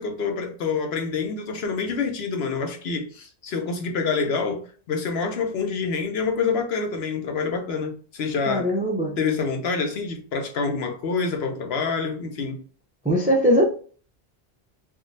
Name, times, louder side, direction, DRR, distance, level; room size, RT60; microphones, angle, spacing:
voice 1, 0.0-8.7 9.2-12.6, left 5 dB, 70° left, 0.9 m, -27 dB
voice 2, 8.5-9.2 13.0-13.6, equal, 15° right, 0.3 m, -20 dB
3.5 x 2.3 x 2.6 m
omnidirectional pair, 1.1 m